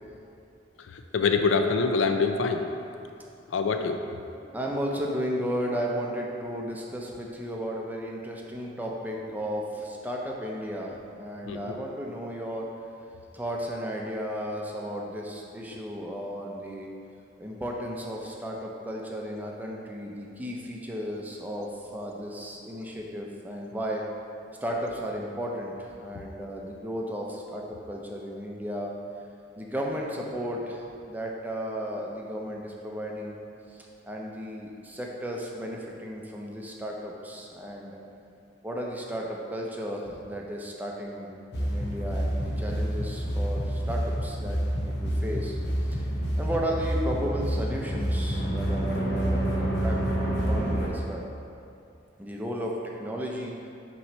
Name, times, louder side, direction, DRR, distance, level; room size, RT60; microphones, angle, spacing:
voice 1, 0.8-2.7 3.5-4.0 11.5-11.6, left 4 dB, 85° left, 6 dB, 0.4 m, -25 dB
voice 2, 4.4-12.7 13.3-16.9 17.4-24.0 24.6-28.9 29.6-33.4 33.7-38.0 38.6-45.6 45.8-46.0 46.4-51.3 52.2-53.6, equal, 10° right, -1 dB, 0.5 m, -34 dB
sound 1, 41.5-50.9, equal, 60° left, 0.8 m, -28 dB
5.8 x 3.0 x 5.4 m, 2.6 s
head